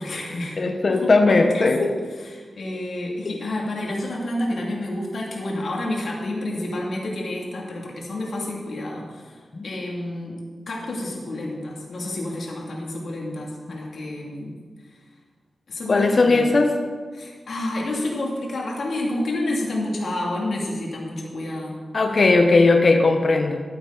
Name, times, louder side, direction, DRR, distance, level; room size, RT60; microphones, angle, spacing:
voice 1, 0.0-0.6 0.9-1.9 2.2-9.4 9.6-10.4 10.7-14.6 15.7-16.5 17.2-21.8, left 1 dB, 70° left, -2 dB, 2.6 m, -29 dB
voice 2, 0.6-1.9 3.2-3.3 9.5-9.7 15.9-16.8 21.9-23.6, left 3 dB, 50° left, 5 dB, 1.0 m, -18 dB
13.5 x 9.3 x 4.0 m, 1.5 s
wide cardioid pair, 90°, 0 cm